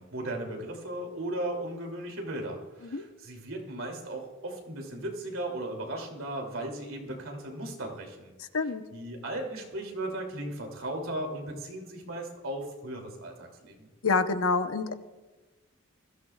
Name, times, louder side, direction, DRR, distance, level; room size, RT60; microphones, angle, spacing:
voice 1, 0.0-8.3 8.9-13.9, right 1 dB, 70° right, 1 dB, 2.9 m, -36 dB
voice 2, 14.0-14.9, left 4 dB, 80° left, 9 dB, 0.9 m, -26 dB
22.0 x 14.0 x 2.4 m, 1.2 s
head